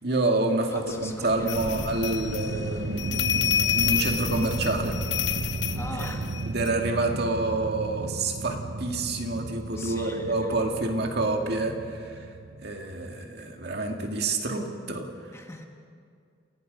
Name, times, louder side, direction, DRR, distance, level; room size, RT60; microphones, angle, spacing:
voice 1, 0.0-5.0 5.9-6.1 6.5-12.3 12.6-15.3, right 2 dB, 55° right, 2 dB, 2.2 m, -28 dB
Stream, 0.6-6.3, equal, 15° right, 4.6 m, -42 dB
voice 2, 0.7-1.8 5.8-6.3 9.8-10.6 15.3-15.6, left 2 dB, 15° left, 3 dB, 1.7 m, -40 dB
sound 1, 0.9-13.2, right 2 dB, 75° right, 0.8 m, -35 dB
sound 2, 1.5-6.7, left 8 dB, 65° left, 0.9 m, -29 dB
28.5 x 17.5 x 5.3 m, 2.3 s
head